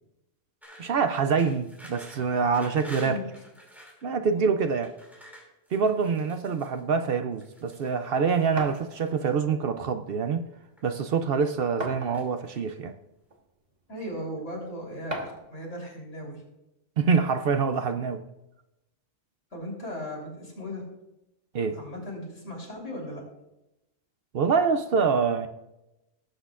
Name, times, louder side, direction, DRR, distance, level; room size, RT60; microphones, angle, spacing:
sound 1, 0.6-4.0 4.7-6.8 7.3-7.9 8.3-9.3 10.2-10.8 11.1-11.7 12.1-12.9, equal, ahead, 2.5 m, -50 dB
voice 1, 0.8-3.2 4.0-4.9 5.7-10.5 10.8-12.9 17.0-18.2 21.5-21.8 24.3-25.5, right 5 dB, 60° right, 9 dB, 0.7 m, -25 dB
voice 2, 2.9-3.2 4.3-4.5 13.9-16.4 19.5-20.8 21.7-23.2, equal, 80° left, -3 dB, 3.9 m, -37 dB
sound 2, 8.6-8.8 10.0-10.1 10.5-10.6 11.8-12.4 13.3-13.4 15.1-15.5, right 1 dB, 35° right, 1.4 m, -34 dB
18.0 x 7.9 x 2.4 m, 0.92 s
omnidirectional pair, 1.2 m